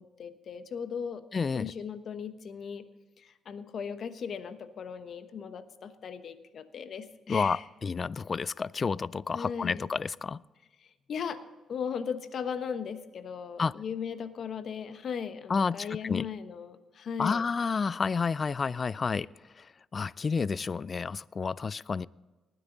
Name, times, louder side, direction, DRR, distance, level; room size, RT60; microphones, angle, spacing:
voice 1, 0.0-1.2 1.5-2.9 3.2-7.6 9.3-9.8 10.8-11.4 11.7-17.4, left 7 dB, 55° left, 10 dB, 1.1 m, -37 dB
voice 2, 1.3-1.7 7.3-10.4 13.6-13.7 15.5-16.3 17.2-19.3 19.6-19.7 19.9-22.1, left 5 dB, 40° left, 22 dB, 0.3 m, -30 dB
19.5 x 9.9 x 3.9 m, 1.2 s
cardioid pair, 90°, 0 cm